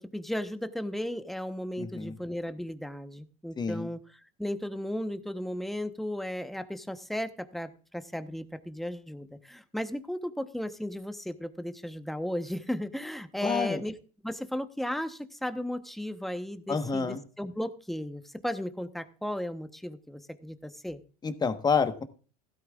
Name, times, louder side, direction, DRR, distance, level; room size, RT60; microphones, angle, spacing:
voice 1, 0.1-4.0 4.4-13.9 14.2-21.0, left 1 dB, ahead, 10 dB, 1.0 m, -35 dB
voice 2, 1.8-2.2 3.6-3.9 13.4-13.8 16.7-17.2 21.2-22.0, left 5 dB, 20° left, 9 dB, 1.2 m, -28 dB
16.0 x 12.5 x 2.4 m, 0.38 s
hypercardioid pair, 95°, 20 cm